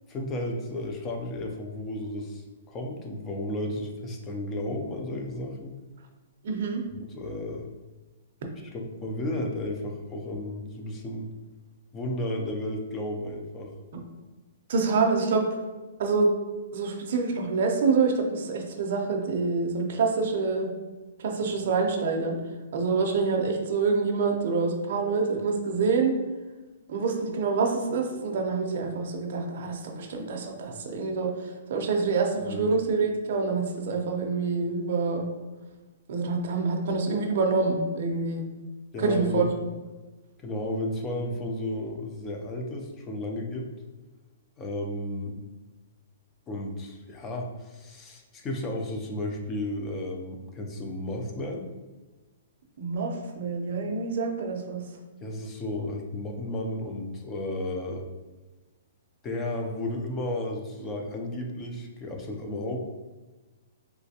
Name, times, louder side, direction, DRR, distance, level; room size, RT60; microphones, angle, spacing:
voice 1, 0.1-5.7 7.1-7.7 8.7-11.3 11.9-13.7 32.4-32.7 38.9-39.5 40.4-43.7 44.6-45.4 46.5-51.7 55.2-58.1 59.2-62.8, left 1 dB, 15° left, 1 dB, 0.4 m, -33 dB
voice 2, 6.4-6.8 13.9-14.0 14.7-15.5 16.0-16.3 16.7-20.7 21.2-22.4 22.7-26.1 26.9-35.3 36.1-38.4 39.0-39.5 52.8-54.8, right 4 dB, 45° right, 1 dB, 0.5 m, -26 dB
3.2 x 2.9 x 2.7 m, 1.2 s
hypercardioid pair, 170°, 0 cm